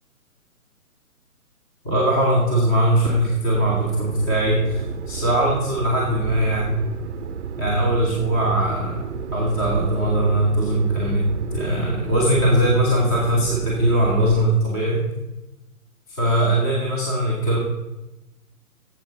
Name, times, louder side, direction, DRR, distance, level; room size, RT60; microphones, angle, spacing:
voice 1, 1.8-6.8 7.6-9.0 9.3-15.1 16.2-17.6, right 1 dB, 5° left, -6 dB, 0.8 m, -20 dB
sound 1, 3.5-14.5, right 7 dB, 50° right, 0.6 m, -32 dB
8.8 x 7.3 x 4.1 m, 0.97 s
hypercardioid pair, 150°, 45 cm